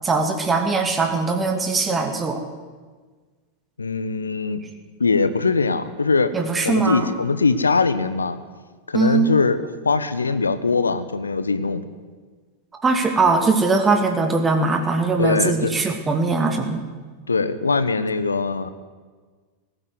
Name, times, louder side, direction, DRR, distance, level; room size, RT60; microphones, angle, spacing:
voice 1, 0.0-2.4 6.3-7.1 8.9-9.3 12.8-16.8, right 4 dB, 15° right, 5 dB, 2.3 m, -21 dB
voice 2, 3.8-4.6 5.0-6.3 6.6-8.4 8.9-11.8 15.2-15.7 17.3-18.7, left 4 dB, 75° left, 13 dB, 1.3 m, -21 dB
18.5 x 15.5 x 9.6 m, 1.4 s
figure-of-eight pair, 90°, 0 cm